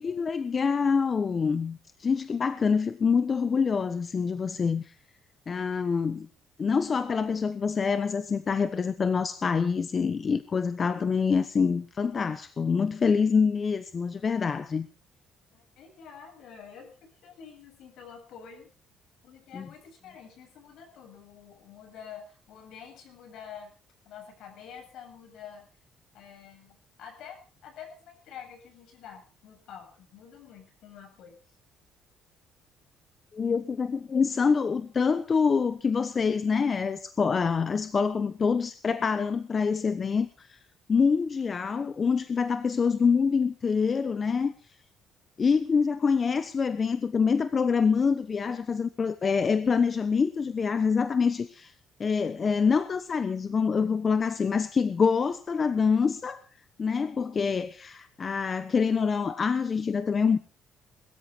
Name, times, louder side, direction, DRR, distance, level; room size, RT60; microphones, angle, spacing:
voice 1, 0.0-4.9 5.5-6.3 6.6-14.9 19.5-19.7 33.3-40.6 40.9-44.5 45.4-51.7 52.0-56.4 56.8-60.4, left 5 dB, 30° left, 1.1 m, -26 dB
voice 2, 15.5-18.7 19.2-23.7 24.1-25.7 26.1-27.4 27.6-31.4, left 7 dB, 65° left, 7.9 m, -47 dB
21.5 x 14.0 x 4.5 m
cardioid pair, 145°, 0 cm